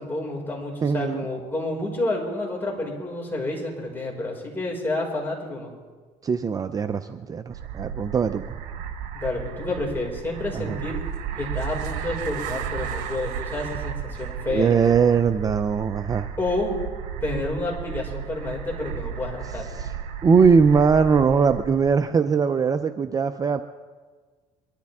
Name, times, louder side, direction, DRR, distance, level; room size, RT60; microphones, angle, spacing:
voice 1, 0.0-5.7 9.1-11.0 11.4-14.8 16.4-16.8 17.2-19.8, left 2 dB, 15° left, -2 dB, 5.5 m, -29 dB
voice 2, 0.8-1.2 6.2-8.6 10.5-10.8 14.5-16.3 19.7-19.9 20.2-23.6, right 5 dB, 30° right, 10 dB, 0.6 m, -21 dB
sound 1, 7.5-21.9, right 8 dB, 75° right, 1.4 m, -34 dB
23.0 x 13.0 x 3.6 m, 1.4 s
supercardioid pair, 100°, 13 cm